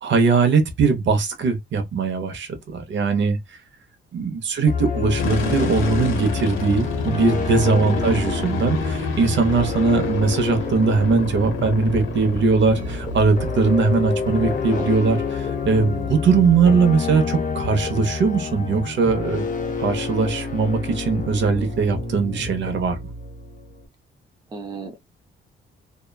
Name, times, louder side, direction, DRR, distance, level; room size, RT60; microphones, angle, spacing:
voice 1, 0.0-3.4 4.1-19.5 19.8-23.0, right 4 dB, 60° right, 0.8 m, -20 dB
sound 1, 4.7-23.8, left 4 dB, 40° left, 0.6 m, -29 dB
sound 2, 5.2-20.0, left 3 dB, 70° left, 0.8 m, -32 dB
voice 2, 7.8-8.3 14.7-15.0 24.5-25.0, right 3 dB, 20° right, 0.4 m, -34 dB
sound 3, 12.7-20.2, left 3 dB, 35° right, 1.1 m, -41 dB
2.9 x 2.2 x 2.2 m
cardioid pair, 130°, 21 cm